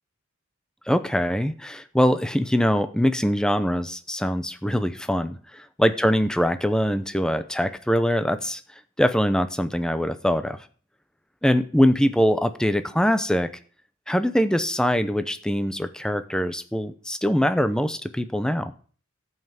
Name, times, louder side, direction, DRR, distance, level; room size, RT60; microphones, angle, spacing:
voice 1, 0.9-5.4 5.8-8.6 9.0-10.6 11.4-13.5 14.1-18.7, equal, 5° left, 10 dB, 0.7 m, -23 dB
13.0 x 5.6 x 7.5 m, 0.43 s
head